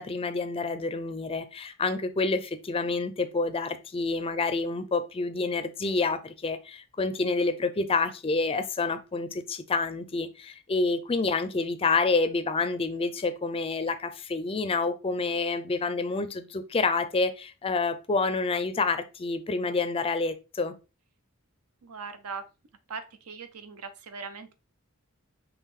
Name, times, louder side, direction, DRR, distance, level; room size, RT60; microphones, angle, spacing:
voice 1, 0.0-20.7, left 3 dB, 25° left, 0.4 m, -28 dB
voice 2, 21.8-22.4 22.9-24.5, right 5 dB, 80° right, 0.7 m, -40 dB
5.5 x 3.0 x 3.1 m
head